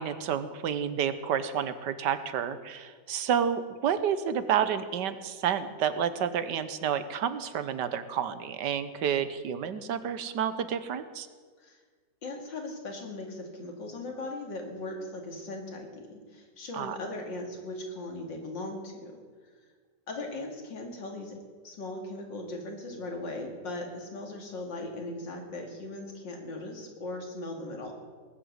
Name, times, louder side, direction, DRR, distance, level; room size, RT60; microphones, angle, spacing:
voice 1, 0.0-11.3 16.7-17.0, right 8 dB, 75° right, 12 dB, 1.4 m, -30 dB
voice 2, 12.2-19.2 20.1-21.4 21.6-27.9, left 2 dB, 85° left, 2 dB, 3.0 m, -38 dB
19.0 x 7.8 x 8.1 m, 1.5 s
omnidirectional pair, 1.9 m